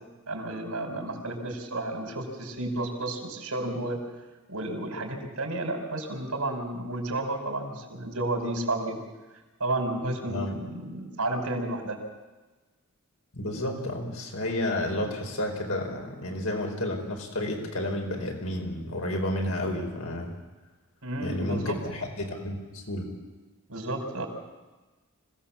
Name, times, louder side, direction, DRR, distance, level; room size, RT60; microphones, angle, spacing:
voice 1, 0.3-4.0 4.5-9.0 9.6-12.0 21.0-21.8 23.7-24.3, right 2 dB, 90° right, 2 dB, 5.0 m, -32 dB
voice 2, 13.3-20.3 21.2-23.1, left 1 dB, 75° left, 1 dB, 5.0 m, -31 dB
26.0 x 17.0 x 7.3 m, 1.2 s
head